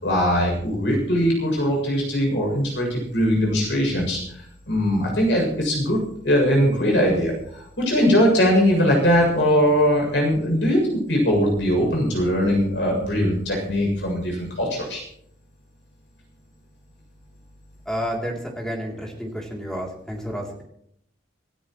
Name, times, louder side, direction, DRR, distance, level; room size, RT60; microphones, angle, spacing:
voice 1, 0.0-4.2 4.7-15.0, equal, 70° left, 0 dB, 7.2 m, -21 dB
voice 2, 17.8-20.6, equal, 5° left, -1 dB, 3.2 m, -30 dB
27.5 x 13.0 x 3.1 m, 0.70 s
head